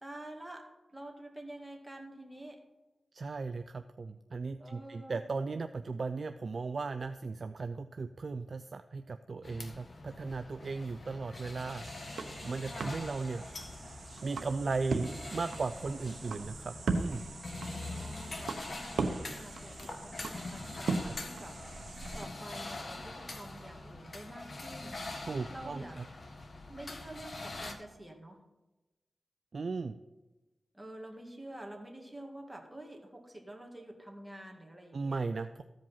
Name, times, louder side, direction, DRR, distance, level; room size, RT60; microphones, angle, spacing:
voice 1, 0.0-2.6 4.6-5.4 12.7-13.1 17.8-25.0 25.5-26.0 26.7-28.4 30.7-35.2, right 1 dB, 10° right, 2 dB, 2.1 m, -48 dB
voice 2, 3.1-13.5 13.9-17.2 21.1-21.2 25.3-25.8 29.5-30.0 34.9-35.6, right 4 dB, 60° right, 9 dB, 0.4 m, -37 dB
sound 1, 9.4-27.7, left 2 dB, 50° left, 1.4 m, -44 dB
sound 2, 11.8-22.2, right 3 dB, 85° right, 0.9 m, -39 dB
14.5 x 5.2 x 5.6 m, 1.1 s
cardioid pair, 60°, 0 cm